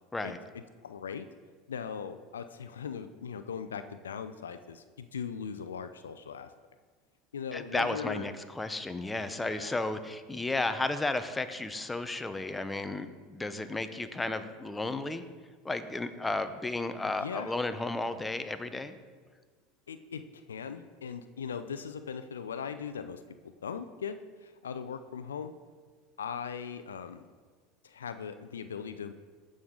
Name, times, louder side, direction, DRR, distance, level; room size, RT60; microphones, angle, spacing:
voice 1, 0.2-1.3 1.7-6.5 7.3-8.3 9.4-9.8 17.0-17.5 19.9-23.2 23.6-25.5 26.2-27.3 27.8-29.1, left 7 dB, 90° left, 10 dB, 0.5 m, -39 dB
voice 2, 7.5-15.2 15.6-19.0, left 2 dB, 15° left, 10 dB, 0.8 m, -33 dB
15.0 x 6.3 x 3.8 m, 1.5 s
hypercardioid pair, 85°, 0 cm